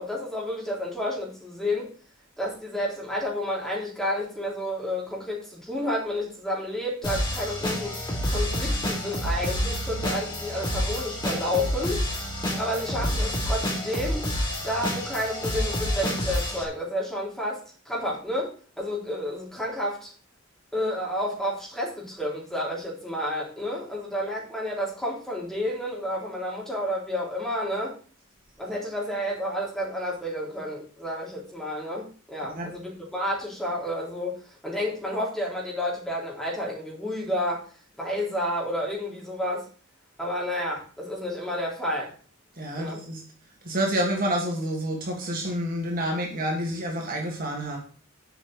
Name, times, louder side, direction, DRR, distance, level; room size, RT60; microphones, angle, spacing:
voice 1, 0.0-1.9 2.4-12.0 12.6-14.3 14.6-18.5 18.8-20.1 20.7-28.0 28.6-37.7 38.0-39.7 40.2-42.1 42.8-43.0, left 1 dB, ahead, -3 dB, 4.1 m, -30 dB
sound 1, 7.0-16.6, equal, 20° left, 3.5 m, -28 dB
voice 2, 42.6-43.2 43.6-47.8, equal, 45° right, 0 dB, 2.5 m, -28 dB
8.1 x 6.2 x 8.0 m, 0.41 s
head